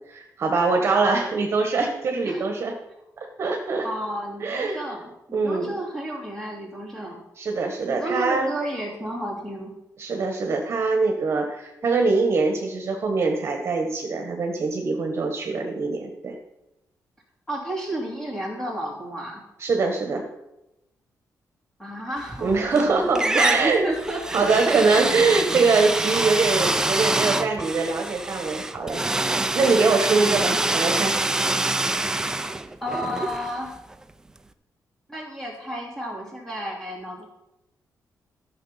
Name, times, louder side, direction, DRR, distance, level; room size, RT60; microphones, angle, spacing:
voice 1, 0.1-2.7 3.2-3.8 4.4-4.8 5.3-5.8 7.4-8.5 10.0-16.3 19.6-20.3 22.4-23.8 24.3-29.1 29.5-31.2, right 4 dB, 40° right, 3 dB, 1.4 m, -23 dB
voice 2, 3.8-7.2 7.9-9.8 17.5-19.4 21.8-25.0 30.2-30.6 32.8-33.8 35.1-37.3, right 1 dB, 5° left, -3 dB, 2.9 m, -32 dB
sound 1, 22.2-22.8 23.1-34.0, right 2 dB, 10° right, 0.5 m, -26 dB
13.0 x 6.8 x 5.7 m, 0.89 s
wide cardioid pair, 175°, 7 cm